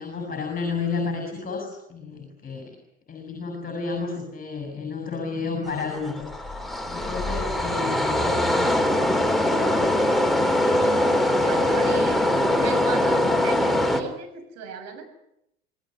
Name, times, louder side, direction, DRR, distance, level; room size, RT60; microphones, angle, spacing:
voice 1, 0.0-2.8 3.1-6.3 6.9-9.9, left 4 dB, 25° left, 4 dB, 6.7 m, -32 dB
sound 1, 5.7-14.0, left 1 dB, ahead, 3.3 m, -22 dB
voice 2, 9.9-15.0, right 6 dB, 50° right, 6 dB, 6.5 m, -37 dB
26.5 x 18.5 x 9.6 m, 0.81 s
figure-of-eight pair, 70°, 32 cm